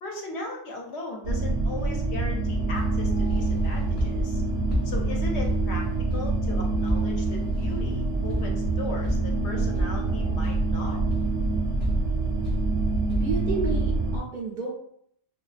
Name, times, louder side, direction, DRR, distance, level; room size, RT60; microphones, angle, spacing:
voice 1, 0.0-4.4 4.8-5.8 6.1-11.0, left 2 dB, 75° left, 1 dB, 0.8 m, -37 dB
sound 1, 1.2-14.2, right 2 dB, 80° right, 0.9 m, -26 dB
sound 2, 2.8-13.5, equal, 35° left, 0.4 m, -36 dB
voice 2, 13.1-14.7, right 5 dB, 60° right, -3 dB, 0.5 m, -31 dB
2.3 x 2.2 x 2.4 m, 0.68 s
omnidirectional pair, 1.2 m